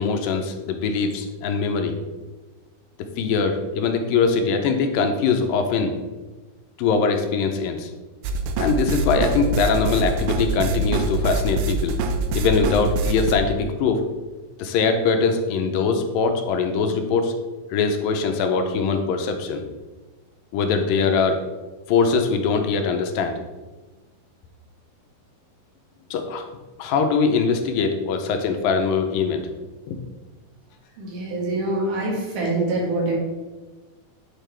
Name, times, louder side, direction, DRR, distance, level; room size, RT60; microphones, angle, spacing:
voice 1, 0.0-2.0 3.2-5.9 6.8-7.9 8.6-12.0 12.3-14.0 14.6-17.3 17.7-19.6 20.5-21.4 21.9-23.4 26.1-26.5 26.8-29.4 29.9-30.0, left 5 dB, 85° left, 5 dB, 2.4 m, -22 dB
sound 1, 8.2-13.3, right 2 dB, 85° right, 1.7 m, -24 dB
voice 2, 31.0-33.2, right 2 dB, 65° right, -3 dB, 2.9 m, -25 dB
9.1 x 4.5 x 3.3 m, 1.2 s
omnidirectional pair, 4.1 m